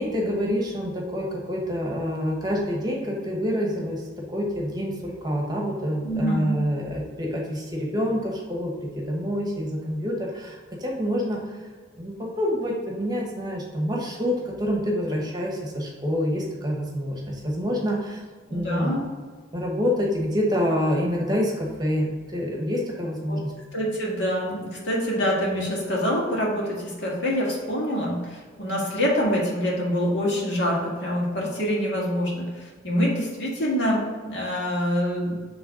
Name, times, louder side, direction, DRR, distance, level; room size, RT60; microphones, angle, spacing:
voice 1, 0.0-11.4 12.0-18.2 18.5-18.9 19.5-23.5, equal, 20° right, -1 dB, 1.1 m, -27 dB
voice 2, 6.0-6.6 18.5-19.1 23.3-23.4 23.7-35.4, equal, 65° left, -4 dB, 2.0 m, -26 dB
7.9 x 3.3 x 5.2 m, 1.5 s
head